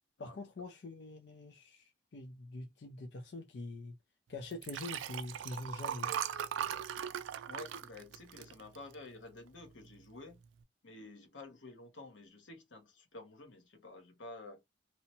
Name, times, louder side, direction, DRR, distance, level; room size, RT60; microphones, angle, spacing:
voice 1, 0.2-3.9 4.3-6.1, left 2 dB, 60° left, 0.4 m, -45 dB
Liquid, 4.5-9.1 9.6-9.9 10.2-10.3, right 9 dB, 85° right, 0.3 m, -39 dB
voice 2, 7.5-10.4 10.8-14.6, left 2 dB, 90° left, 0.8 m, -51 dB
2.7 x 2.1 x 2.7 m
head